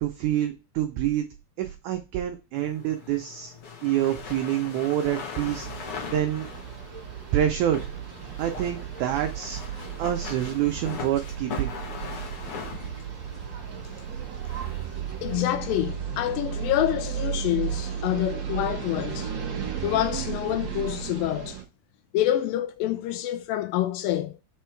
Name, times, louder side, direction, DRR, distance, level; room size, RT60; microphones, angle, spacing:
voice 1, 0.0-1.3 1.6-3.5 3.8-6.5 7.3-7.8 8.4-11.7, right 11 dB, 90° right, 1.7 m, -27 dB
sound 1, 2.5-15.3, left 6 dB, 60° left, 1.5 m, -41 dB
sound 2, 5.3-21.6, right 8 dB, 60° right, 1.2 m, -34 dB
voice 2, 15.2-19.3 19.8-21.6 22.1-24.4, left 13 dB, 80° left, 2.1 m, -27 dB
5.1 x 4.6 x 4.4 m
omnidirectional pair, 4.3 m